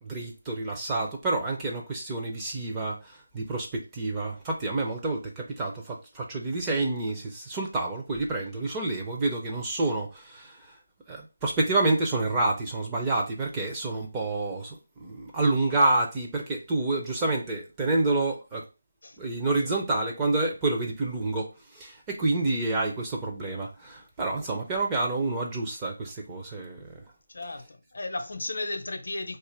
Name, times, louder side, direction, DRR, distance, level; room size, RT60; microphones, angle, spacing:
voice 1, 0.0-10.6 11.1-18.6 19.2-26.9, right 2 dB, 10° right, 0.5 m, -28 dB
voice 2, 27.3-29.4, left 2 dB, 60° left, 0.5 m, -34 dB
2.5 x 2.4 x 4.1 m
figure-of-eight pair, 170°, 0 cm